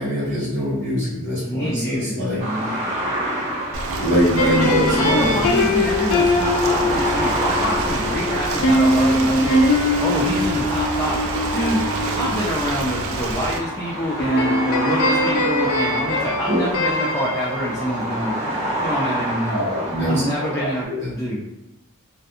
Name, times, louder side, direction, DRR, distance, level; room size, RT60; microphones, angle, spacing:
voice 1, 0.0-2.4 4.0-5.4 16.5-16.6 19.5-21.1, equal, 65° right, -10 dB, 1.1 m, -23 dB
voice 2, 1.4-2.7 4.6-9.7 10.0-11.2 11.5-11.8 12.2-18.3 18.8-21.4, equal, 10° left, -6 dB, 0.3 m, -26 dB
sound 1, 2.4-20.8, right 1 dB, 30° right, 0.8 m, -29 dB
Ocean, 3.7-13.6, right 2 dB, 80° right, 0.4 m, -28 dB
sound 2, 4.4-13.2 14.2-18.7, left 1 dB, 85° left, 0.4 m, -22 dB
2.4 x 2.2 x 2.8 m, 0.96 s
head